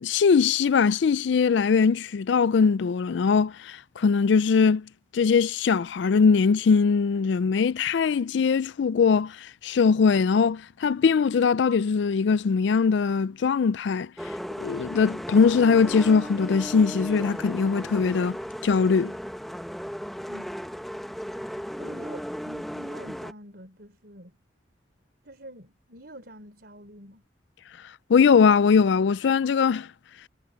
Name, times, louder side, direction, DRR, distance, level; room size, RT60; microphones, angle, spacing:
voice 1, 0.0-14.1 14.6-18.4 18.6-19.1 28.1-29.9, left 5 dB, 70° left, 0.4 m, -21 dB
sound 1, 14.2-23.3, equal, ahead, 0.9 m, -36 dB
voice 2, 21.8-24.4 25.2-27.2, right 1 dB, 55° right, 4.5 m, -46 dB
head